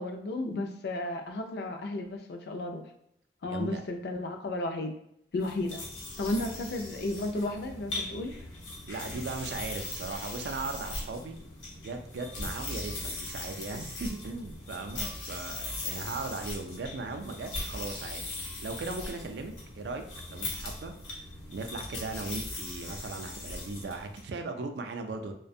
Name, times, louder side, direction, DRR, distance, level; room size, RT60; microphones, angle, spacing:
voice 1, 0.0-2.9 3.4-4.9 5.3-5.9 6.2-8.3, left 2 dB, 60° left, 5 dB, 0.4 m, -33 dB
voice 2, 3.4-3.8 6.4-6.5 8.8-11.3 11.7-20.0 20.3-20.9 21.5-25.3, right 3 dB, 65° right, 5 dB, 0.3 m, -38 dB
sound 1, 5.4-24.2, left 2 dB, 85° left, 0.7 m, -39 dB
2.4 x 2.1 x 2.6 m, 0.75 s
head